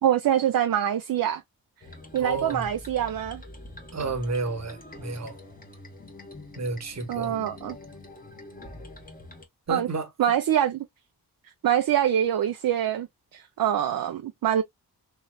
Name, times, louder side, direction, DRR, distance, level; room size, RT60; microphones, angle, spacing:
voice 1, 0.0-1.4 2.1-3.4 7.1-7.8 9.7-9.9 10.2-10.8 11.6-13.1 13.3-14.6, right 10 dB, 60° right, 0.6 m, -24 dB
sound 1, 1.8-9.5, left 2 dB, 20° left, 1.2 m, -45 dB
voice 2, 2.1-2.7 3.9-5.4 6.5-7.4 9.7-10.1, right 3 dB, 40° right, 1.1 m, -31 dB
3.1 x 3.0 x 2.2 m
cardioid pair, 85°, 40 cm